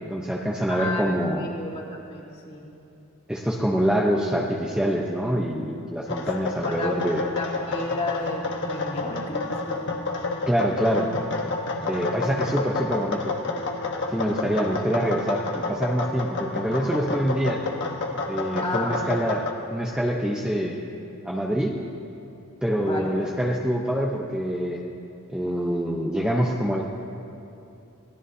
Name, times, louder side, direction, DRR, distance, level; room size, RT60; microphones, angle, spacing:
voice 1, 0.0-1.5 3.3-7.2 10.5-11.1 11.9-13.4 14.1-17.7 18.3-20.8 21.2-21.8 22.6-24.8 25.3-26.8, equal, 5° right, -2 dB, 0.8 m, -25 dB
voice 2, 0.7-1.1 1.4-2.6 6.2-6.3 6.6-6.9 7.4-10.0 18.6-19.1 22.8-23.1, left 2 dB, 25° left, -4 dB, 2.6 m, -33 dB
sound 1, 6.1-19.5, left 3 dB, 55° left, 1.3 m, -30 dB
28.0 x 18.0 x 2.8 m, 2.8 s
head